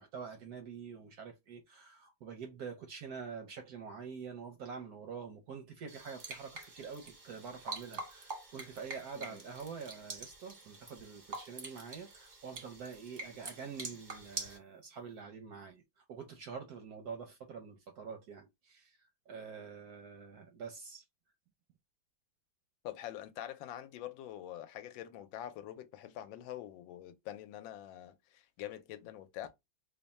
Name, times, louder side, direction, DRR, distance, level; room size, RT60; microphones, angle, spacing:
voice 1, 0.0-15.8 16.1-19.0 19.3-21.0, right 6 dB, 70° right, 0.9 m, -46 dB
sound 1, 5.9-14.6, right 3 dB, 35° right, 0.7 m, -46 dB
voice 2, 22.8-29.5, left 12 dB, 80° left, 1.3 m, -45 dB
3.4 x 2.1 x 4.0 m
omnidirectional pair, 2.1 m